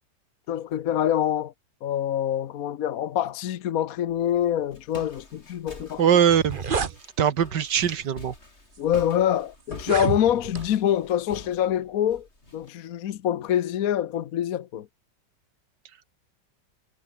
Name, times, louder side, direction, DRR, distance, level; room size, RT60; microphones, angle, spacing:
voice 1, 0.5-1.5 1.8-6.0 8.8-12.3 12.5-14.9, left 10 dB, 60° left, 1.2 m, -25 dB
Walk footsteps, 4.1-12.7, left 2 dB, 35° left, 5.5 m, -46 dB
sound 1, 5.8-5.9 6.2-7.0 7.8-8.0 8.7-8.8 9.7-10.6, right 5 dB, 35° right, 1.1 m, -29 dB
voice 2, 6.0-6.6 7.2-8.3, right 8 dB, 75° right, 2.0 m, -21 dB
omnidirectional pair, 1.9 m